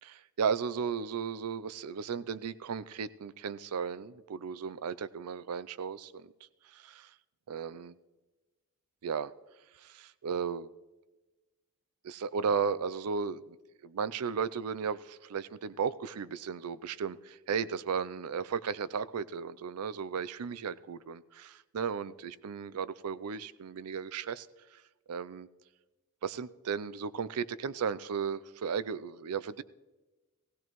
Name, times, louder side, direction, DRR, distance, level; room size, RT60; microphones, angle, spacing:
voice 1, 0.0-6.3 6.7-7.1 7.5-7.9 9.0-9.3 9.8-10.7 12.0-13.6 13.8-24.5 24.7-24.8 25.1-25.5 26.2-29.6, right 6 dB, 85° right, 17 dB, 0.5 m, -35 dB
17.0 x 16.5 x 3.1 m, 1.2 s
head